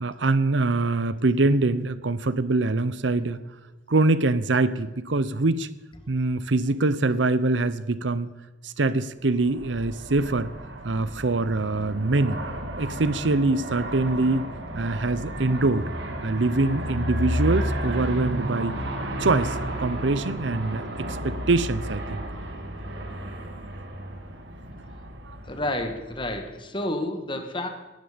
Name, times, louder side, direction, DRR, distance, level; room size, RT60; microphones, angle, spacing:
voice 1, 0.0-3.4 3.9-5.7 6.1-8.3 8.6-10.5 10.8-12.4 12.8-14.5 14.8-15.9 16.2-18.8 19.2-22.2 25.3-25.4, right 2 dB, 90° right, 15 dB, 0.8 m, -24 dB
Aircraft, 9.4-26.6, right 1 dB, 75° right, 2.3 m, -32 dB
voice 2, 25.4-27.7, left 1 dB, 25° left, 6 dB, 1.7 m, -30 dB
18.0 x 14.0 x 5.2 m, 1.2 s
head